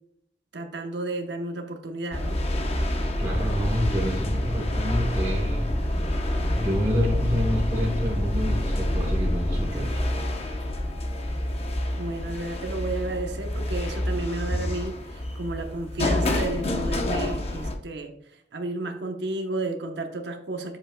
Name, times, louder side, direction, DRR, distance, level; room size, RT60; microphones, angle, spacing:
voice 1, 0.5-2.4 12.0-20.8, right 2 dB, 70° right, 4 dB, 0.9 m, -32 dB
sound 1, 2.1-17.7, left 1 dB, 35° left, 0.8 m, -27 dB
voice 2, 3.2-6.2 6.6-10.0, equal, 20° right, -3 dB, 1.1 m, -28 dB
7.8 x 7.4 x 2.2 m, 0.71 s
head